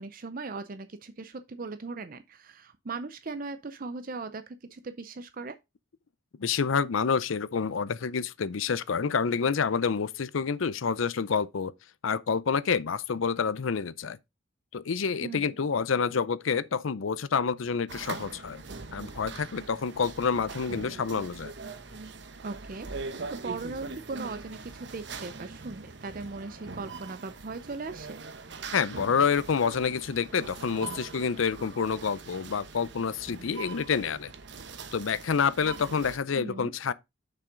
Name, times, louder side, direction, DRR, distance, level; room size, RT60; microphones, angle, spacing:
voice 1, 0.0-5.6 15.2-15.5 22.4-28.2 36.4-36.7, right 3 dB, 45° right, 0.5 m, -39 dB
voice 2, 6.4-11.7 12.0-14.2 14.7-18.6 18.9-21.5 28.7-34.3 34.9-36.9, left 6 dB, 80° left, 0.6 m, -28 dB
sound 1, 17.9-36.2, right 4 dB, 60° right, 0.9 m, -42 dB
6.9 x 5.8 x 3.8 m
head